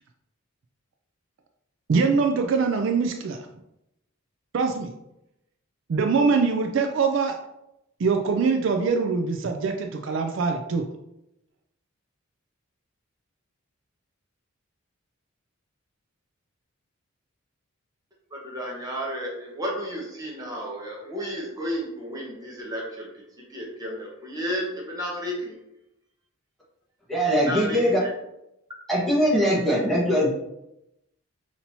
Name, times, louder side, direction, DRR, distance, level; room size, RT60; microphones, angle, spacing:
voice 1, 1.9-3.4 4.5-4.9 5.9-7.3 8.0-10.8, right 4 dB, 60° right, 4 dB, 0.4 m, -23 dB
voice 2, 18.3-23.1 23.5-25.5 27.3-28.1, equal, 15° right, -3 dB, 1.1 m, -32 dB
voice 3, 27.1-28.0 28.9-30.3, equal, ahead, -7 dB, 1.4 m, -21 dB
5.3 x 2.8 x 2.9 m, 0.86 s
head